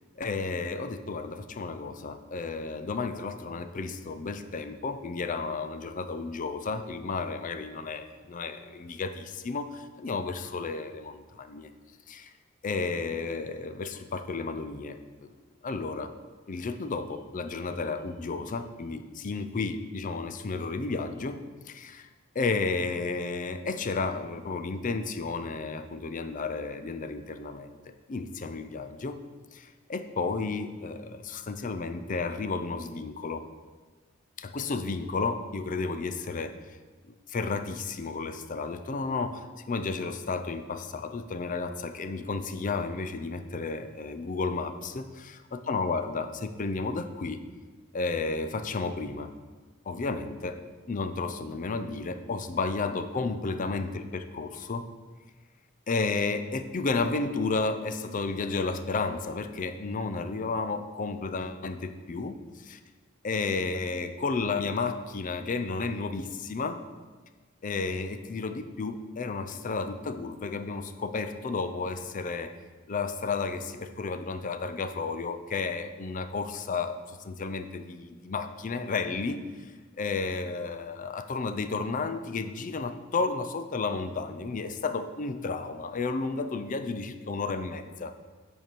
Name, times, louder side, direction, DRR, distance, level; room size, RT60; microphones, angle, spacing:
voice 1, 0.2-11.7 12.1-12.3 12.6-15.3 15.6-16.1 16.5-21.4 21.7-22.1 22.3-27.8 28.1-29.2 29.5-33.4 34.4-36.8 37.3-47.4 47.9-49.3 49.9-50.6 50.9-54.0 54.4-54.8 55.9-62.8 63.2-66.8 67.6-72.5 72.9-79.7 80.0-88.1, left 4 dB, 40° left, 10 dB, 0.5 m, -32 dB
9.1 x 4.6 x 5.2 m, 1.4 s
head